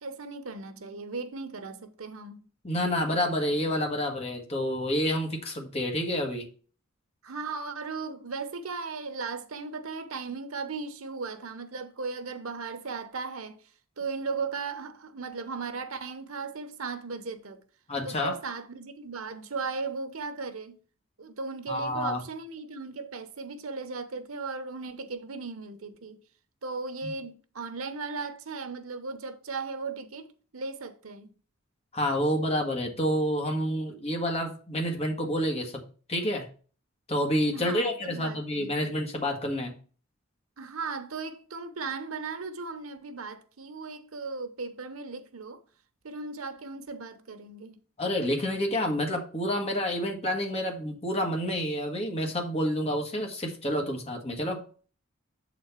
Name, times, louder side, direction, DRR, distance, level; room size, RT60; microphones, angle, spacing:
voice 1, 0.0-2.4 7.2-13.6 14.0-17.6 18.0-20.8 21.2-26.2 26.6-31.3 37.5-38.9 40.6-45.6 46.0-47.8, right 4 dB, 90° right, 0.9 m, -37 dB
voice 2, 2.6-6.5 17.9-18.4 21.7-22.2 27.0-27.1 31.9-35.8 36.1-36.5 37.1-39.7 48.0-54.6, equal, 30° left, 1.6 m, -29 dB
7.3 x 4.3 x 5.7 m
head